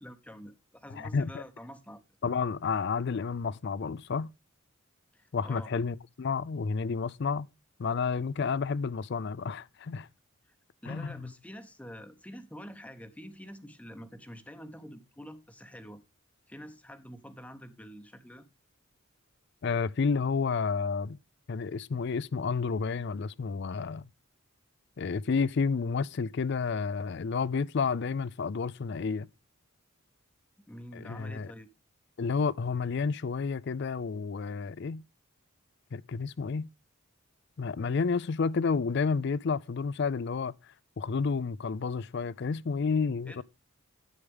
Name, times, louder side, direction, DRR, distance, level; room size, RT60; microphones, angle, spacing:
voice 1, 0.0-2.0 5.1-5.7 10.5-10.6 10.8-16.0 16.5-18.5 30.7-31.7 43.3-43.4, equal, 5° left, 0.8 m, -47 dB
voice 2, 1.0-1.4 2.2-4.3 5.3-7.5 7.8-10.1 10.9-11.3 19.6-21.2 21.5-24.1 25.0-29.3 30.9-31.5 32.2-35.0 35.9-36.7 37.6-40.5 41.0-43.4, left 5 dB, 50° left, 0.4 m, -30 dB
10.0 x 8.3 x 3.5 m
head